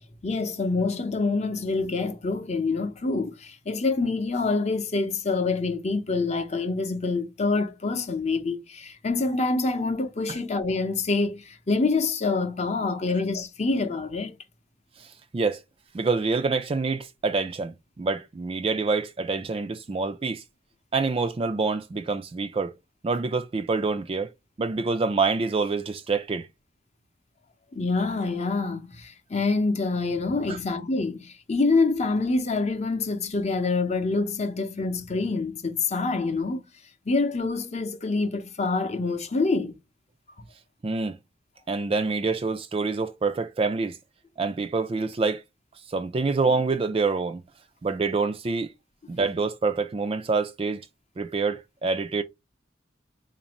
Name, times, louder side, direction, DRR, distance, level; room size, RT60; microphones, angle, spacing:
voice 1, 0.2-14.4 27.7-36.6 37.1-39.7, left 3 dB, 35° left, 0.6 m, -26 dB
voice 2, 15.9-20.4 20.9-22.7 23.0-24.3 24.6-26.5 30.5-30.6 40.8-41.2 41.7-44.0 44.4-45.4 45.9-47.4 47.8-48.7 49.1-50.8 51.2-52.2, right 4 dB, 30° right, 0.3 m, -26 dB
4.1 x 2.6 x 2.9 m
head